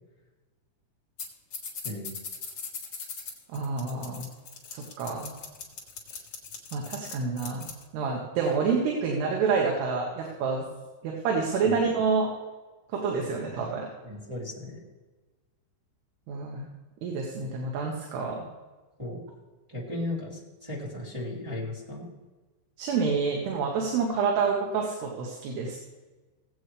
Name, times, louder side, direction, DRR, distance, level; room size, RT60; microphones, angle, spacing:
sound 1, 1.2-1.3 1.5-7.8, left 5 dB, 75° left, 1.2 m, -39 dB
voice 1, 1.8-2.2 11.6-11.8 14.0-14.8 19.0-19.2 19.7-22.1, left 1 dB, 10° right, -8 dB, 2.0 m, -36 dB
voice 2, 3.5-4.3 4.7-5.3 6.7-7.7 7.9-10.6 11.0-12.3 12.9-13.9 16.3-16.7 17.0-18.5 22.8-25.8, right 5 dB, 70° right, -1 dB, 3.2 m, -28 dB
18.0 x 8.1 x 3.3 m, 1.2 s
omnidirectional pair, 5.4 m